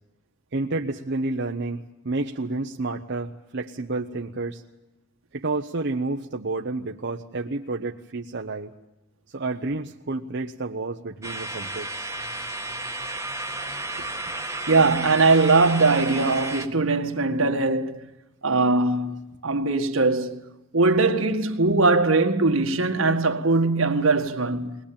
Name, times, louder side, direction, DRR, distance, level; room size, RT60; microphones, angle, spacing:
voice 1, 0.5-4.6 5.3-8.7 9.3-12.1, right 3 dB, 60° right, 0.9 m, -30 dB
sound 1, 11.2-16.7, right 2 dB, 15° right, 1.3 m, -33 dB
voice 2, 14.7-18.1 18.4-20.4 20.7-24.8, right 3 dB, 80° right, 1.9 m, -21 dB
21.0 x 21.0 x 8.8 m
head